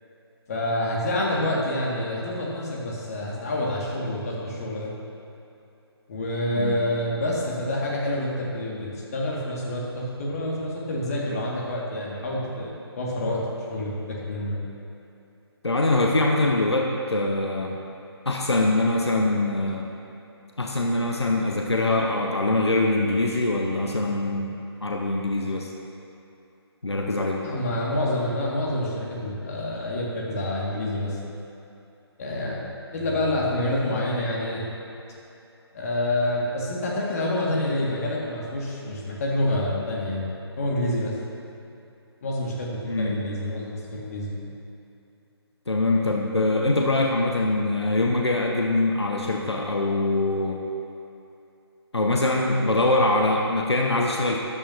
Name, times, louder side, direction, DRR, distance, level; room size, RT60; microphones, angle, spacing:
voice 1, 0.5-4.9 6.1-13.4 13.7-14.6 27.4-31.4 32.2-32.7 32.9-34.6 35.7-40.2 40.6-41.2 42.2-44.5, left 1 dB, 35° left, -4 dB, 2.0 m, -27 dB
voice 2, 15.6-17.8 18.2-19.9 20.6-24.5 24.8-25.7 26.8-27.4 42.9-43.2 45.7-50.6 51.9-54.4, left 2 dB, 75° left, 0 dB, 1.1 m, -23 dB
14.0 x 10.5 x 2.8 m, 2.8 s
figure-of-eight pair, 145°, 14 cm